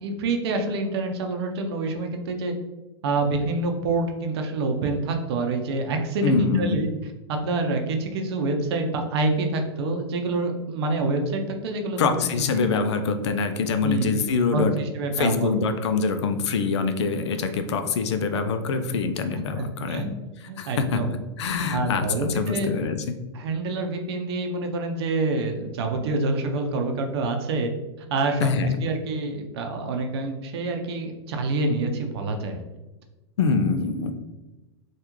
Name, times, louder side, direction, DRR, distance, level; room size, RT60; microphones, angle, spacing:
voice 1, 0.0-2.5 3.0-6.9 7.3-12.2 12.6-12.7 13.8-14.1 14.5-15.5 19.6-20.1 20.5-21.1 21.7-22.7 23.3-27.7 28.0-28.5 28.8-32.6, right 3 dB, 70° right, 4 dB, 0.6 m, -27 dB
voice 2, 6.2-6.8 12.0-14.8 15.2-20.0 20.6-23.1 28.4-28.8 33.4-34.1, left 5 dB, 80° left, 8 dB, 0.4 m, -24 dB
3.5 x 2.4 x 3.0 m, 1.1 s
hypercardioid pair, 125°, 14 cm